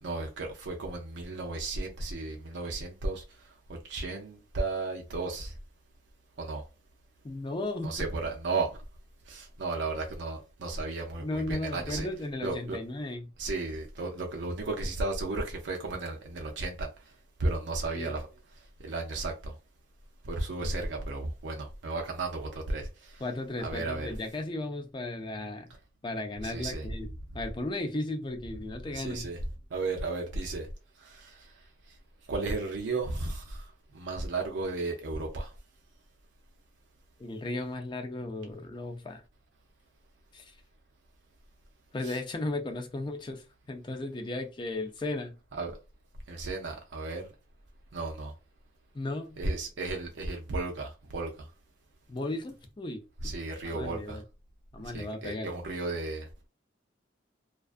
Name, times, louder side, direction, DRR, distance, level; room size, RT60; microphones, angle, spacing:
voice 1, 0.0-5.5 6.4-6.6 7.8-8.8 9.3-12.1 12.4-12.8 13.4-17.1 17.4-18.3 18.5-19.5 20.2-23.2 23.6-24.2 26.4-26.9 28.9-29.4 29.7-30.7 31.0-32.0 32.3-35.6 42.0-42.2 45.5-45.8 46.3-47.3 47.9-48.3 49.4-51.5 53.2-54.2 54.8-56.5, right 3 dB, 70° right, 0.5 m, -34 dB
voice 2, 7.2-8.1 11.2-13.3 17.9-18.1 23.2-25.7 26.0-27.1 27.3-29.3 37.2-39.2 40.3-40.5 41.9-45.4 48.9-49.4 52.1-53.0 53.7-54.2 54.7-55.5, left 2 dB, 25° left, 0.4 m, -35 dB
2.4 x 2.3 x 2.4 m
head